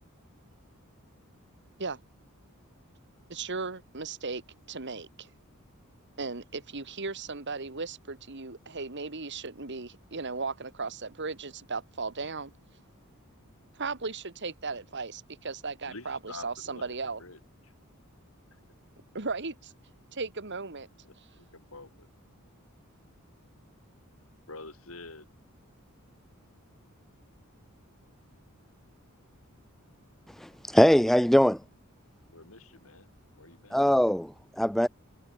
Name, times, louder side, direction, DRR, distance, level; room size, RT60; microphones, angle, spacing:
voice 1, 3.3-4.4 4.7-5.3 6.2-12.5 13.7-17.2 19.1-19.7 20.1-20.9 21.2-21.3, right 4 dB, 55° right, 2.2 m, -36 dB
voice 2, 15.9-16.8 17.2-17.7 18.5-18.6 21.0-21.1 21.5-22.1 24.5-25.3 32.3-33.1 33.3-33.8, left 3 dB, 70° left, 5.2 m, -47 dB
voice 3, 30.4-31.6 33.7-34.9, equal, ahead, 0.3 m, -22 dB
head